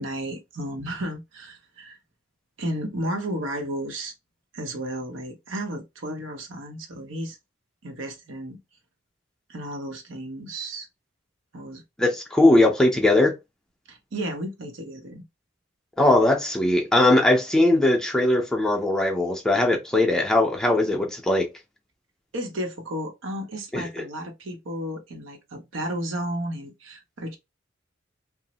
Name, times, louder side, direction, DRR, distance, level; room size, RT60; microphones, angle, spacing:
voice 1, 0.0-2.0 2.6-4.1 4.5-7.4 7.8-8.6 9.5-10.9 11.5-11.8 13.9-15.2 22.3-27.4, right 1 dB, 85° right, 0.8 m, -33 dB
voice 2, 12.0-13.3 16.0-21.5 23.7-23.9, left 1 dB, 5° left, 0.5 m, -20 dB
3.0 x 2.0 x 2.8 m
head